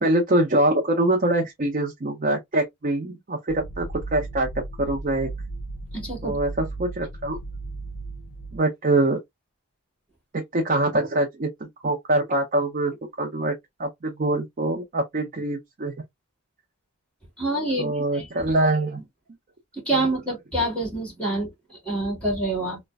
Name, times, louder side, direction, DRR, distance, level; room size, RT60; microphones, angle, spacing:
voice 1, 0.0-3.9 4.1-4.5 4.8-5.3 6.2-7.4 8.5-9.2 10.3-11.5 11.8-13.5 13.8-15.9 17.8-19.0 19.9-20.0, right 2 dB, 40° right, 0.6 m, -24 dB
sound 1, 3.5-8.6, right 2 dB, 65° left, 0.6 m, -35 dB
voice 2, 5.9-6.4 17.4-18.5 19.9-22.8, right 2 dB, 5° left, 1.9 m, -27 dB
4.0 x 2.1 x 2.3 m
head